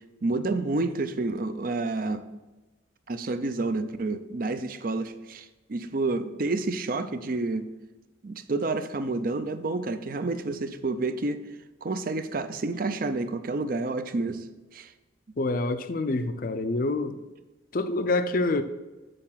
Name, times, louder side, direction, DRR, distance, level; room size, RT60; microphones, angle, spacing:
voice 1, 0.2-2.2 3.1-7.7 8.2-11.4 11.8-14.4 14.7-14.9, right 3 dB, 45° right, 11 dB, 0.5 m, -29 dB
voice 2, 15.4-17.2 17.7-18.6, left 2 dB, 45° left, 10 dB, 0.5 m, -26 dB
6.7 x 6.6 x 5.7 m, 1.1 s
head